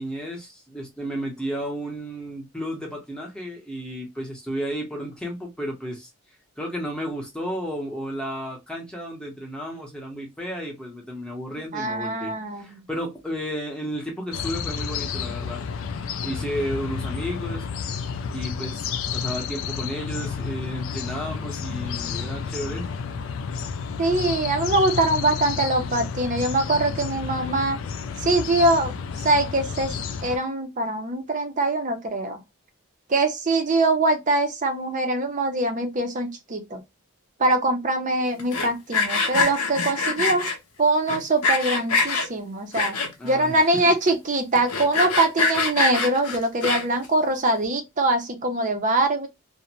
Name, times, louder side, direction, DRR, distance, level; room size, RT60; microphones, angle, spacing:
voice 1, 0.0-6.1 6.6-15.6 16.2-17.7 18.3-18.8 19.1-22.9 43.2-44.0, equal, 5° left, 0.7 m, -33 dB
voice 2, 11.7-12.8 24.0-27.8 28.2-28.9 29.2-29.9 30.2-32.4 33.1-36.8 37.4-40.5 40.8-43.0 43.2-49.3, right 2 dB, 35° right, 0.5 m, -23 dB
sound 1, 14.3-30.4, left 6 dB, 60° left, 0.3 m, -31 dB
Sawing, 38.4-40.6 41.1-42.3 42.7-43.3 43.8-43.9 44.1-44.2 44.6-47.1, left 4 dB, 90° left, 0.7 m, -24 dB
2.5 x 2.1 x 2.8 m
head